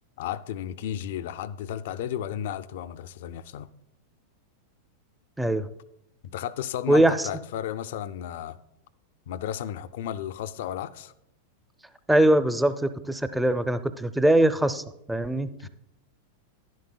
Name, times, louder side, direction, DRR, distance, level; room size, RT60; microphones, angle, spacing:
voice 1, 0.2-3.7 6.2-8.6 9.3-11.1 15.6-15.7, left 10 dB, 65° left, 0.4 m, -33 dB
voice 2, 5.4-5.7 6.9-7.3 12.1-15.7, right 1 dB, 5° right, 0.5 m, -22 dB
11.0 x 10.5 x 2.2 m
hypercardioid pair, 100°, 0 cm